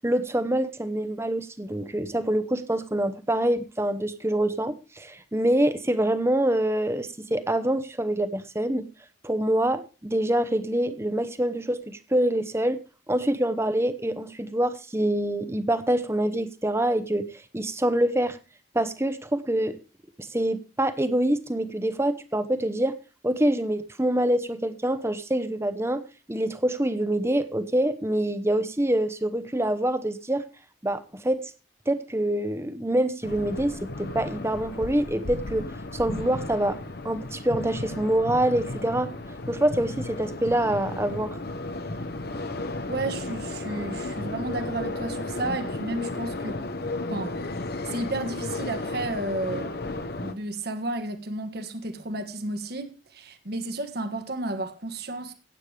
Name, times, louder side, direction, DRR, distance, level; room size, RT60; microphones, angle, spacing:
voice 1, 0.0-8.8 9.2-12.8 13.1-18.4 18.7-19.8 20.2-23.0 23.2-26.0 26.3-30.4 30.8-31.5 31.9-35.6 35.9-36.8 37.0-39.1 39.5-41.4, right 1 dB, 15° right, 0.8 m, -25 dB
sound 1, 33.2-50.3, left 2 dB, 55° left, 1.0 m, -34 dB
voice 2, 42.9-46.6 47.1-47.4 47.8-55.3, right 2 dB, 55° right, 1.4 m, -32 dB
16.0 x 9.0 x 3.4 m
head